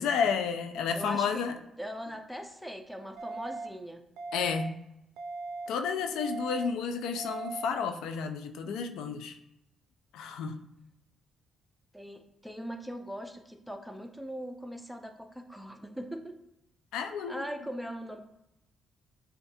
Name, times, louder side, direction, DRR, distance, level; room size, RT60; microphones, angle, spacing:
voice 1, 0.0-1.6 4.3-4.7 5.7-9.4 10.1-10.6 16.9-17.5, left 6 dB, 85° left, 7 dB, 0.3 m, -31 dB
voice 2, 0.9-1.5 1.8-4.0 11.9-16.4 17.3-18.3, equal, ahead, 6 dB, 0.5 m, -40 dB
sound 1, 3.2-3.7 4.2-4.7 5.2-5.7 6.2-6.7 7.2-7.7, right 3 dB, 85° right, 0.4 m, -38 dB
6.8 x 2.3 x 2.7 m, 0.86 s
cardioid pair, 90°, 0 cm